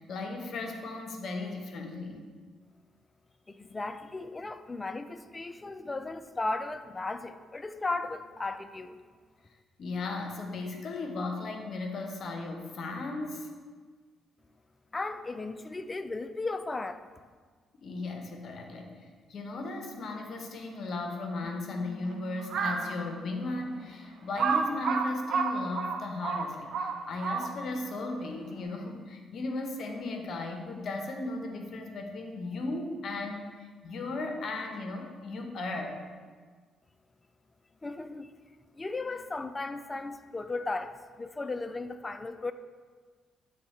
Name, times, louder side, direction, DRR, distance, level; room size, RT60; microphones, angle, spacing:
voice 1, 0.0-2.2 9.8-13.5 17.8-36.0, left 2 dB, 60° left, 0.8 m, -36 dB
voice 2, 3.5-9.0 14.9-17.0 37.8-38.3 38.7-42.5, left 3 dB, 25° left, 0.3 m, -36 dB
Piano, 21.4-26.5, left 5 dB, 15° right, 1.6 m, -50 dB
Crow, 22.4-22.9 23.5-23.6 24.4-27.8, right 5 dB, 65° right, 0.5 m, -30 dB
7.3 x 3.2 x 4.2 m
cardioid pair, 90°, 0 cm